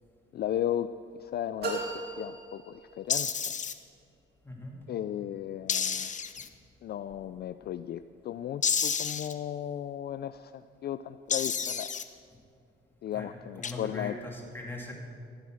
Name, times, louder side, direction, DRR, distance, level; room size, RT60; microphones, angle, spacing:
voice 1, 0.3-0.9 1.2-1.8 2.2-3.3 4.9-6.1 6.8-11.9 13.0-14.2, left 11 dB, 55° left, 11 dB, 0.4 m, -35 dB
sound 1, 1.6-3.3, right 3 dB, 55° right, 2.4 m, -37 dB
sound 2, 3.1-3.7 5.7-6.5 8.6-9.3 11.3-12.0 13.6-13.7, left 6 dB, 40° left, 0.8 m, -30 dB
voice 2, 4.4-4.8 13.1-14.9, left 2 dB, 10° left, -2 dB, 3.0 m, -41 dB
15.0 x 9.1 x 6.4 m, 2.3 s
cardioid pair, 90°, 20 cm